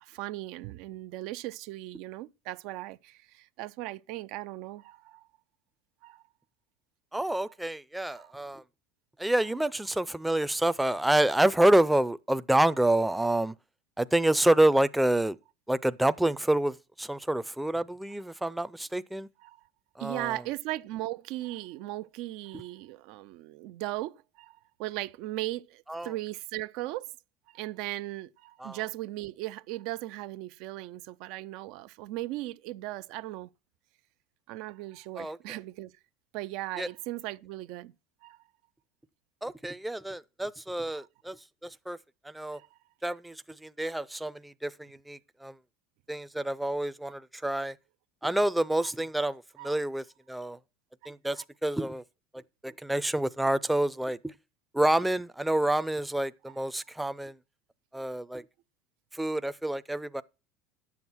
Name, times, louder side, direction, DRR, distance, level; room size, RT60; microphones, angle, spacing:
voice 1, 0.0-5.3 6.0-6.2 7.3-7.5 8.1-8.3 19.4-19.6 20.0-27.1 27.5-33.5 34.5-35.9 36.3-37.9 38.2-38.4 40.9-41.1 42.5-42.8 47.1-47.2 48.8-48.9 49.6-49.8 51.3-51.4, right 16 dB, 65° right, 0.5 m, -38 dB
voice 2, 7.1-8.6 9.2-13.5 14.0-15.4 15.7-19.3 20.0-20.4 25.9-26.1 28.6-28.8 35.2-35.4 36.8-36.9 39.4-41.4 41.6-42.0 42.2-42.6 43.0-45.5 46.1-47.7 48.2-50.6 51.1-51.4 51.6-52.0 52.6-54.3 54.7-57.3 57.9-58.4 59.1-60.2, right 1 dB, 5° right, 0.5 m, -28 dB
10.5 x 7.2 x 6.1 m
supercardioid pair, 110°, 0 cm